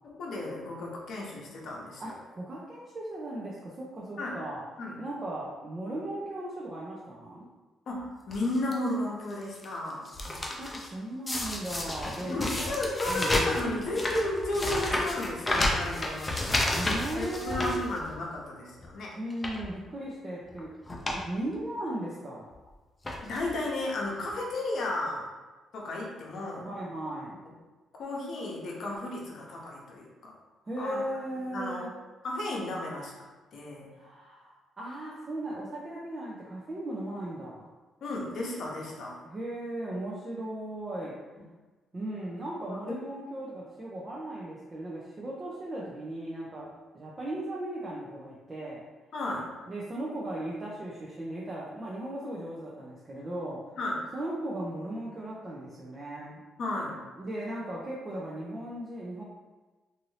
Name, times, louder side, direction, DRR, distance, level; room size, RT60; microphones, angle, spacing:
voice 1, 0.0-2.1 4.2-4.4 4.8-5.0 7.9-10.1 12.2-16.7 17.1-19.1 23.2-25.2 25.7-26.7 28.0-30.3 30.8-31.0 31.5-31.8 32.2-33.1 33.5-33.9 38.0-39.2 42.8-43.0 49.1-49.4 53.8-54.0 56.6-57.0, left 2 dB, 60° left, -2 dB, 0.8 m, -33 dB
voice 2, 2.0-4.6 5.0-7.5 10.3-12.7 13.1-13.8 16.7-17.9 19.2-20.7 21.1-22.5 26.6-27.4 30.6-31.9 33.9-37.7 39.2-41.1 41.9-46.7 46.9-48.8 49.7-53.6 54.1-56.4 57.2-59.2, right 1 dB, 30° right, -5 dB, 0.5 m, -37 dB
sound 1, 8.3-8.7 9.3-9.6 9.9-10.9 11.3-18.4 18.7-18.9 19.3-19.7 20.5-20.6 20.9-21.2 21.5-21.6 22.5-22.7 23.0-23.5 24.3-24.4 24.6-24.7, left 1 dB, 20° left, 0.5 m, -31 dB
2.7 x 2.6 x 3.1 m, 1.2 s
cardioid pair, 90°, 0 cm